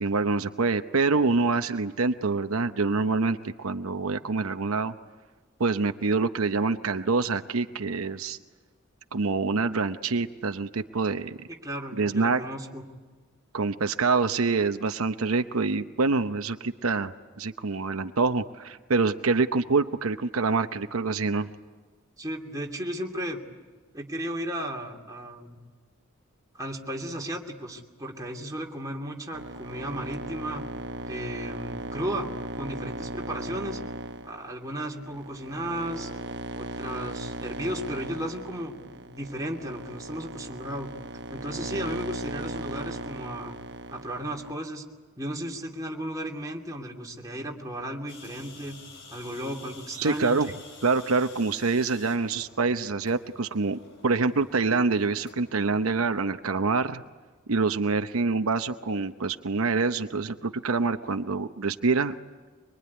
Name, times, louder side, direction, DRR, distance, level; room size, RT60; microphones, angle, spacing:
voice 1, 0.0-4.9 5.6-8.4 9.1-11.5 12.0-12.4 13.5-21.5 50.0-50.5 50.8-57.0 57.5-62.1, right 4 dB, 85° right, 8 dB, 0.8 m, -26 dB
voice 2, 11.6-12.8 22.2-23.4 23.9-25.6 26.5-30.7 31.1-33.8 34.2-36.1 36.5-40.9 41.3-43.6 43.9-44.8 45.2-48.8 49.1-50.4, right 1 dB, 15° right, 0 dB, 2.7 m, -35 dB
sound 1, 29.3-44.5, right 1 dB, 55° right, 1.1 m, -37 dB
sound 2, 48.1-55.5, left 3 dB, 60° left, 5.5 m, -49 dB
24.0 x 23.0 x 9.6 m, 1.4 s
head